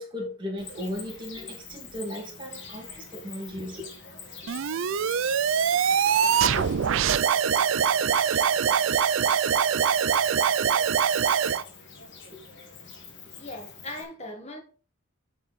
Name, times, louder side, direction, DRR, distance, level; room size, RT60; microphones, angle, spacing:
voice 1, 0.0-3.9 12.3-12.4, left 1 dB, 25° right, 2.3 m, -36 dB
Cricket, 0.6-14.0, left 4 dB, 55° left, 1.7 m, -44 dB
sound 1, 4.5-11.6, right 7 dB, 70° right, 0.4 m, -23 dB
voice 2, 13.4-14.6, left 1 dB, 30° left, 1.7 m, -39 dB
9.0 x 4.6 x 4.2 m
head